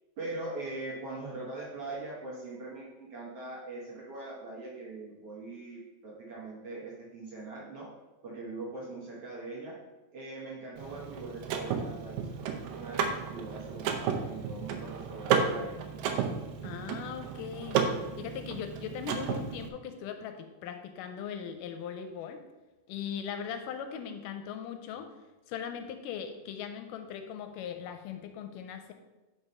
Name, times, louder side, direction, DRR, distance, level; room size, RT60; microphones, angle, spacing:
voice 1, 0.2-7.9 8.2-9.8 10.1-15.8, right 2 dB, 60° right, -5 dB, 1.7 m, -41 dB
Car / Mechanisms, 10.8-19.7, right 6 dB, 80° right, 2.3 m, -33 dB
voice 2, 16.6-17.9 18.2-22.4 22.9-25.1 25.5-28.9, left 8 dB, 80° left, 7 dB, 2.0 m, -39 dB
5.3 x 4.8 x 5.4 m, 1.1 s
omnidirectional pair, 3.9 m